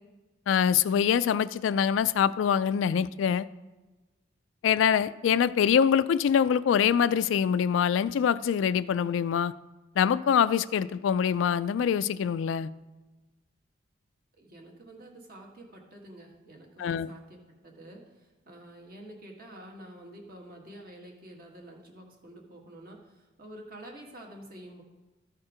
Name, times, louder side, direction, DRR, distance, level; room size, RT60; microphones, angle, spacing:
voice 1, 0.5-3.5 4.6-9.5 10.0-12.7 16.8-17.1, left 8 dB, 90° left, 0.3 m, -24 dB
voice 2, 14.4-24.8, right 1 dB, 50° right, 1.6 m, -48 dB
13.5 x 4.4 x 4.9 m
head